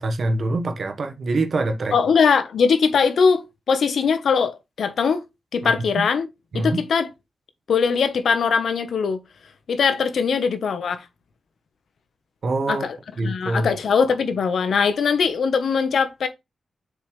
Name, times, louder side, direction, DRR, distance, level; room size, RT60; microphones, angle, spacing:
voice 1, 0.0-1.9 5.6-5.7 6.5-6.8 12.4-12.9 13.2-13.7, right 2 dB, 65° right, 1.2 m, -24 dB
voice 2, 1.9-5.2 5.5-6.3 6.5-7.1 7.7-9.2 9.7-11.0 12.7-13.0 13.2-16.3, left 5 dB, 80° left, 1.0 m, -21 dB
7.1 x 5.5 x 3.2 m
cardioid pair, 60°, 0 cm